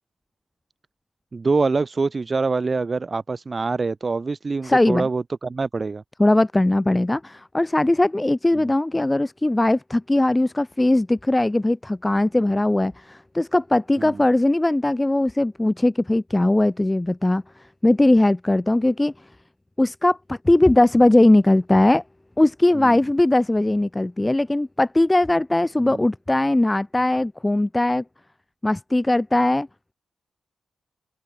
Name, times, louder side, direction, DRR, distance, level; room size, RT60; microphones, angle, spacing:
voice 1, 1.3-6.0 8.5-8.7 12.5-12.6 14.0-14.2 22.7-23.0 25.8-26.0, right 4 dB, 45° right, 3.5 m, -25 dB
voice 2, 4.6-5.1 6.2-17.4 17.8-19.1 19.8-22.0 22.4-28.0 28.6-29.7, left 1 dB, 20° left, 0.7 m, -19 dB
open air
supercardioid pair, 50°, 0 cm